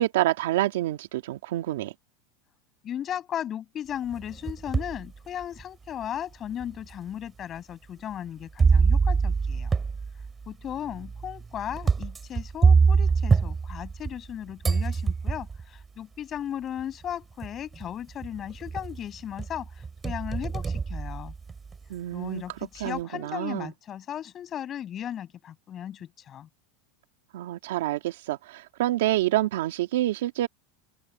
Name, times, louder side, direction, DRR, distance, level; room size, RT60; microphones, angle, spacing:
voice 1, 0.0-1.9 21.9-22.4 22.8-23.7 27.3-30.5, right 15 dB, 80° right, 2.2 m, -27 dB
voice 2, 2.8-9.7 10.5-21.3 22.1-26.5, left 10 dB, 30° left, 7.2 m, -36 dB
sound 1, 4.1-5.0 5.6-5.7 6.6-6.7 8.6-14.3 14.6-15.6 16.8-16.9 17.4-17.8 18.2-19.0 19.4-21.8, right 5 dB, 15° right, 3.0 m, -24 dB
open air
supercardioid pair, 140°, 0 cm